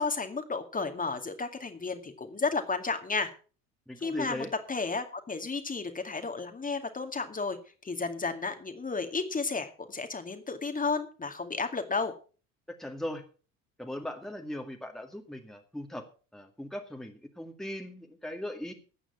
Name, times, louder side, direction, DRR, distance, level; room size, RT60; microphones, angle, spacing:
voice 1, 0.0-3.3 4.0-7.6 7.8-12.1, left 4 dB, 20° left, 6 dB, 2.2 m, -32 dB
voice 2, 3.9-4.5 12.8-13.3 13.8-16.0 16.3-18.7, left 1 dB, ahead, 4 dB, 2.1 m, -39 dB
14.0 x 8.8 x 5.9 m, 0.38 s
figure-of-eight pair, 65°, 39 cm